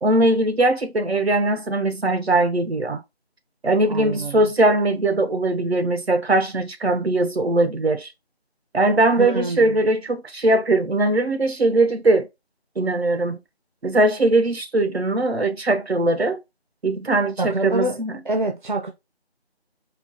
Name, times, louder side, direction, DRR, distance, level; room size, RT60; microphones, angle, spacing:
voice 1, 0.0-3.0 3.6-8.1 8.7-12.3 12.8-13.4 13.8-16.4 16.8-18.2, right 2 dB, 70° right, 1.0 m, -20 dB
voice 2, 3.8-4.5 9.2-9.8 17.4-18.9, right 2 dB, 50° right, 0.8 m, -26 dB
4.7 x 2.4 x 3.8 m
figure-of-eight pair, 170°, 33 cm